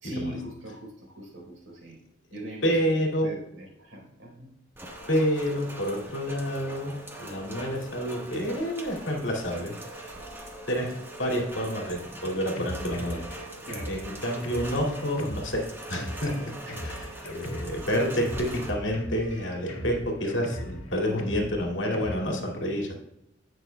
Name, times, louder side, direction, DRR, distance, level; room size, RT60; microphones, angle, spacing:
voice 1, 0.0-2.0 2.3-2.8 3.2-4.5 13.6-13.9 16.7-16.8, equal, 85° right, -1 dB, 3.8 m, -40 dB
voice 2, 2.6-3.3 5.1-9.7 10.7-13.2 13.9-16.4 16.8-23.0, equal, 65° left, 0 dB, 2.2 m, -29 dB
Rain, 4.7-18.7, right 1 dB, 10° right, 1.3 m, -42 dB
Drum kit, 11.9-22.2, equal, 90° left, 1.6 m, -39 dB
17.5 x 6.4 x 2.2 m, 0.82 s
head